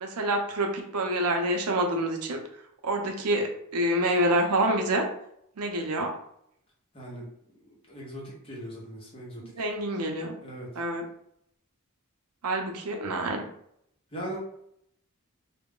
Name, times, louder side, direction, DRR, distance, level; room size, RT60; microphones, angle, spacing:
voice 1, 0.0-2.4 2.8-5.1 5.6-6.1 9.4-10.4 10.8-11.1 12.4-13.5, right 1 dB, 90° right, 3 dB, 0.5 m, -27 dB
voice 2, 6.9-7.3 7.7-9.4 10.4-10.7 14.1-14.4, right 1 dB, 25° left, -4 dB, 0.8 m, -39 dB
2.3 x 2.0 x 3.5 m, 0.71 s
head